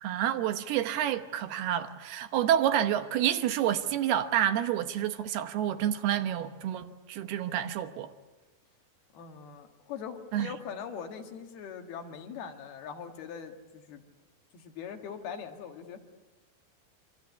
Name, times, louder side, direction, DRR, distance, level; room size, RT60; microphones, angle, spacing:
voice 1, 0.0-8.1 10.3-10.5, right 10 dB, 75° right, 2.9 m, -29 dB
voice 2, 9.1-14.0 14.5-16.0, left 7 dB, 70° left, 3.6 m, -41 dB
26.5 x 25.0 x 8.4 m
omnidirectional pair, 4.7 m